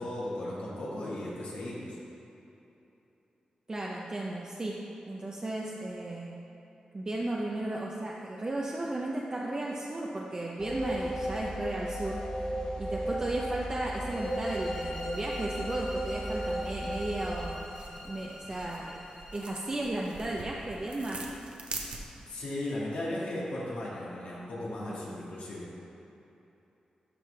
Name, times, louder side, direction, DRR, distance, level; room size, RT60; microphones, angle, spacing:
voice 1, 0.0-2.0 22.3-25.7, left 1 dB, 80° left, -7 dB, 1.8 m, -36 dB
voice 2, 3.7-6.4 6.9-12.2 12.6-17.7 18.0-19.0 19.3-21.2 25.1-25.2, right 2 dB, 30° right, -3 dB, 0.7 m, -35 dB
sound 1, 10.6-17.5, equal, 35° left, 1.3 m, -35 dB
sound 2, 14.1-19.9, left 1 dB, 15° left, 1.6 m, -46 dB
sound 3, 16.3-22.4, right 3 dB, 55° right, 0.9 m, -45 dB
12.0 x 5.5 x 3.3 m, 2.9 s
cardioid pair, 85°, 2 cm